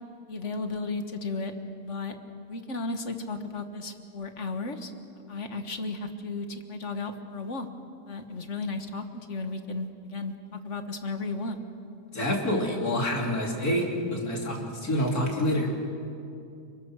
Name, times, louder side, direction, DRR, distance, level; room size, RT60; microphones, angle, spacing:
voice 1, 0.3-1.5 1.8-2.2 2.5-4.9 5.3-7.7 8.1-11.6, left 3 dB, 55° left, 7 dB, 1.8 m, -34 dB
voice 2, 12.1-15.7, left 1 dB, 80° left, -1 dB, 3.6 m, -27 dB
30.0 x 22.0 x 6.3 m, 2.6 s
omnidirectional pair, 1.6 m